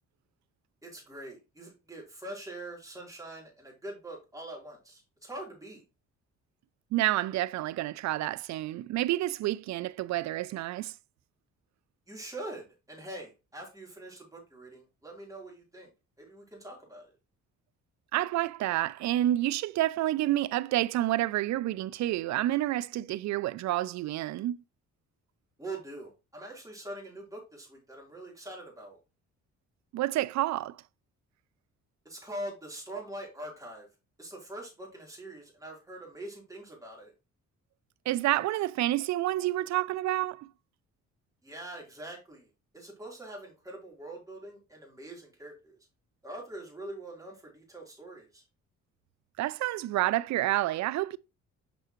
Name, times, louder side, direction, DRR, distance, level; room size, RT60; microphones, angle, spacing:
voice 1, 0.8-5.8 12.1-15.9 16.2-17.1 25.6-29.0 32.1-33.9 34.2-37.1 41.4-42.5 42.7-45.8 46.2-48.4, right 1 dB, 10° right, 3.7 m, -43 dB
voice 2, 6.9-10.9 18.1-24.6 29.9-30.8 38.1-40.5 49.4-51.2, right 15 dB, 70° right, 0.5 m, -29 dB
6.9 x 5.5 x 3.0 m
cardioid pair, 85°, 29 cm